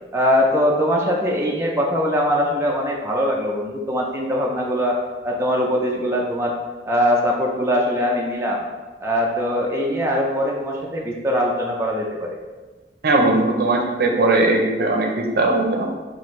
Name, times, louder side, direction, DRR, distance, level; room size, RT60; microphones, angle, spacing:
voice 1, 0.1-5.0 5.2-6.5 6.8-8.6 9.0-12.4, equal, 15° right, -2 dB, 0.4 m, -21 dB
voice 2, 13.0-15.9, right 2 dB, 60° right, 1 dB, 0.6 m, -19 dB
5.3 x 2.5 x 3.1 m, 1.2 s
head